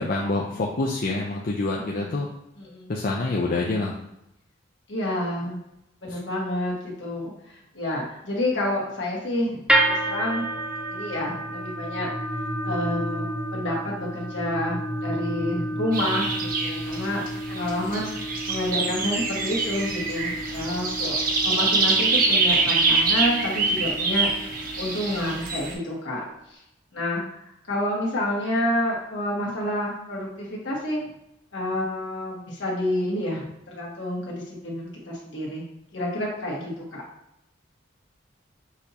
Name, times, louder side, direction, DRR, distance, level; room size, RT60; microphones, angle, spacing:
voice 1, 0.0-2.3 2.9-3.9, left 2 dB, 50° left, -2 dB, 0.5 m, -26 dB
voice 2, 1.7-2.1 2.6-2.9 4.9-5.6 6.0-7.3 7.7-9.6 9.8-10.5 10.9-12.1 12.6-17.2 17.5-18.1 18.5-21.2 21.4-24.3 24.8-26.2 26.9-27.2 27.7-31.1 31.5-35.6 35.9-37.0, left 1 dB, 70° left, -4 dB, 1.5 m, -29 dB
sound 1, 9.7-25.9, right 1 dB, 5° right, 0.4 m, -31 dB
sound 2, 15.9-25.7, right 3 dB, 50° right, 0.7 m, -25 dB
6.4 x 2.7 x 2.8 m, 0.83 s
head